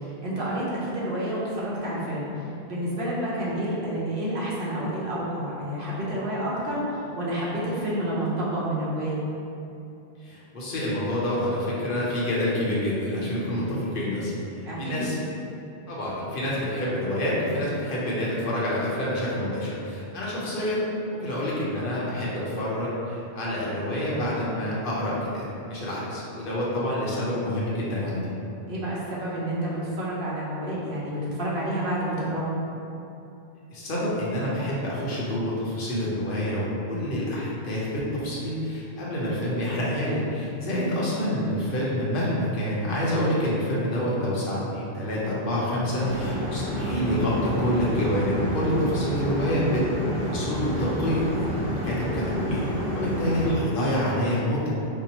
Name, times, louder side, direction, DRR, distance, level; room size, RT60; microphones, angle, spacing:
voice 1, 0.0-9.2 14.6-15.1 28.7-32.5 40.7-41.0, right 1 dB, 60° right, -7 dB, 1.0 m, -29 dB
voice 2, 10.2-14.3 14.8-15.2 15.9-28.3 33.7-51.2 51.6-52.7 52.9-54.7, left 1 dB, 60° left, -7 dB, 0.9 m, -27 dB
sound 1, 46.0-53.5, equal, 15° right, 1.1 m, -29 dB
4.6 x 2.0 x 2.8 m, 2.9 s
omnidirectional pair, 1.1 m